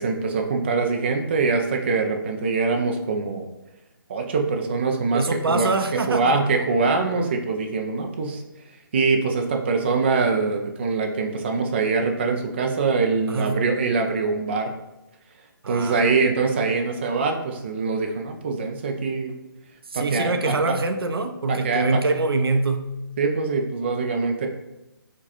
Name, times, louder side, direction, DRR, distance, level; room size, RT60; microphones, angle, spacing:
voice 1, 0.0-3.5 4.1-8.4 8.9-14.7 15.7-19.3 19.9-20.8 21.5-22.0 23.2-24.5, right 4 dB, 30° right, 3 dB, 0.4 m, -23 dB
voice 2, 5.1-6.4 13.3-13.6 15.6-16.1 19.9-22.9, right 3 dB, 85° right, 7 dB, 0.6 m, -24 dB
4.7 x 2.2 x 4.2 m, 0.96 s
hypercardioid pair, 165°, 12 cm